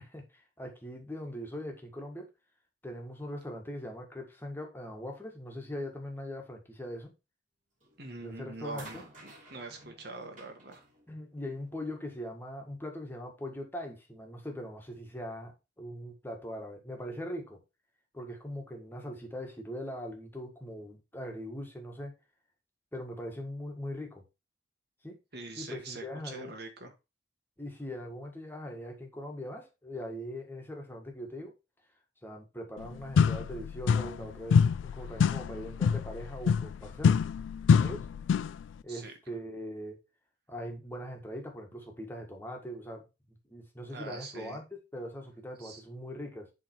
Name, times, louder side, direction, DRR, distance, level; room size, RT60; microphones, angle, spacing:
voice 1, 0.0-2.3 2.8-7.1 8.2-9.0 11.1-17.6 18.1-22.1 22.9-24.2 25.0-25.2 25.6-26.5 27.6-31.5 32.2-37.2 37.7-38.1 38.8-40.0 40.5-46.5, equal, 10° left, 1.6 m, -41 dB
sound 1, 7.8-8.2 8.7-12.0 13.0-13.1, right 1 dB, 45° right, 3.1 m, -53 dB
voice 2, 8.0-10.9 25.3-26.9 38.9-39.1 43.9-44.6 45.6-45.8, right 3 dB, 60° right, 1.6 m, -44 dB
sound 2, 32.8-32.9 33.2-34.3 34.5-38.6, left 6 dB, 90° left, 0.3 m, -26 dB
7.5 x 3.5 x 4.4 m
head